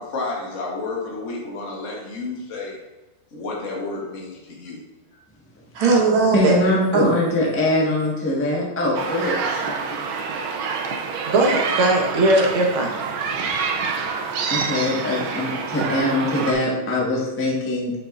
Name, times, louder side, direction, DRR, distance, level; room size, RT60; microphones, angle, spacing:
voice 1, 0.0-2.8 3.3-4.8, left 3 dB, 55° left, -3 dB, 0.8 m, -31 dB
voice 2, 5.8-6.6 6.9-7.1 11.3-12.9, right 2 dB, 55° right, -1 dB, 1.9 m, -18 dB
voice 3, 6.3-10.0 14.5-17.9, left 1 dB, 15° left, -4 dB, 0.4 m, -22 dB
sound 1, 8.9-16.5, right 5 dB, 85° right, 1.1 m, -27 dB
8.4 x 7.6 x 2.6 m, 1.1 s
omnidirectional pair, 3.3 m